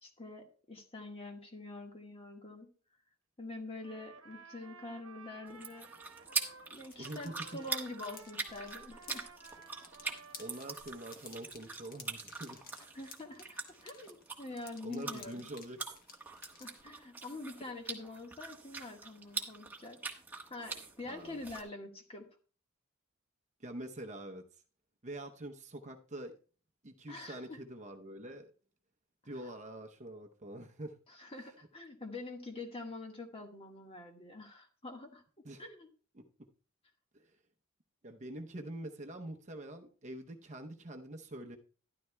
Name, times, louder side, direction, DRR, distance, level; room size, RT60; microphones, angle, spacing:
voice 1, 0.0-2.7 3.4-5.9 6.7-9.3 12.9-15.5 16.6-20.0 20.3-22.3 27.1-27.6 29.3-29.5 31.1-35.2 35.6-35.9, left 2 dB, 25° left, 1.5 m, -46 dB
Trumpet, 3.8-6.7 7.0-11.2, right 5 dB, 65° right, 1.1 m, -55 dB
sound 1, 5.5-21.6, right 4 dB, 10° right, 1.3 m, -43 dB
sound 2, 6.7-16.8, left 5 dB, 40° left, 1.4 m, -55 dB
voice 2, 7.0-7.3 10.4-12.8 14.8-16.0 21.1-21.4 23.6-24.5 25.0-26.3 26.8-28.5 29.2-31.0 35.4-35.6 36.1-36.2 37.1-37.3 38.0-41.6, right 1 dB, 35° right, 0.8 m, -45 dB
12.5 x 11.5 x 2.2 m
head